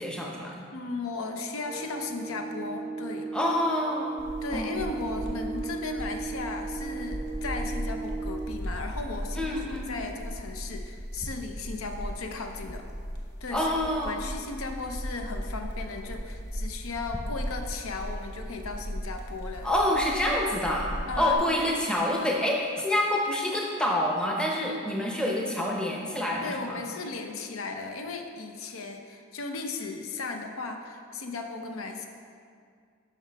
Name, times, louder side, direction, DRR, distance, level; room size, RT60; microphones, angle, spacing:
voice 1, 0.0-0.7 3.3-4.2 4.5-4.9 9.3-10.0 13.5-14.3 19.6-26.8, left 1 dB, 5° left, -2 dB, 0.7 m, -27 dB
voice 2, 0.7-3.3 4.4-12.9 13.4-13.7 14.0-19.7 21.1-21.7 26.4-32.1, left 3 dB, 75° left, 4 dB, 0.6 m, -36 dB
sound 1, 1.6-8.7, right 4 dB, 30° right, 0.3 m, -36 dB
sound 2, 4.2-21.3, equal, 50° left, 1.0 m, -37 dB
10.5 x 5.8 x 3.4 m, 2.2 s
head